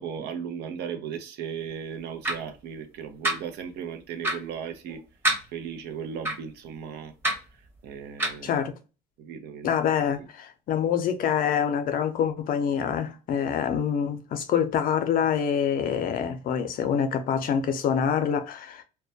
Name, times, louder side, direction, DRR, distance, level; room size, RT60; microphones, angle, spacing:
voice 1, 0.0-5.0 5.5-8.6 9.2-9.7 10.2-10.3, right 7 dB, 80° right, 0.5 m, -37 dB
sound 1, 2.2-2.4 3.2-3.3 4.2-4.4 5.2-5.4 6.2-6.4 7.2-7.4 8.2-8.4, right 1 dB, 15° right, 0.8 m, -24 dB
voice 2, 8.4-8.8 9.6-18.8, left 8 dB, 55° left, 0.5 m, -26 dB
2.1 x 2.1 x 2.6 m
cardioid pair, 110°, 17 cm